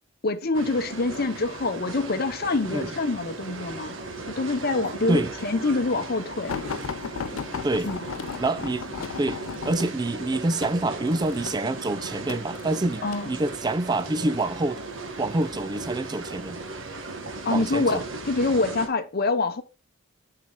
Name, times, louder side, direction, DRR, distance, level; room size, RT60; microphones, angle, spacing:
voice 1, 0.2-4.0 4.3-6.6 7.8-8.1 13.0-13.3 17.4-19.6, left 3 dB, 50° left, 0.8 m, -26 dB
sound 1, 0.5-18.9, right 3 dB, 70° right, 1.4 m, -37 dB
sound 2, 6.5-13.3 14.0-14.5 15.4-16.1 16.8-17.0 17.4-17.5, left 6 dB, 90° left, 0.5 m, -35 dB
voice 2, 8.4-8.9 9.2-14.8 15.2-16.6 17.5-18.0, right 2 dB, 20° right, 0.4 m, -26 dB
6.8 x 6.4 x 3.9 m
head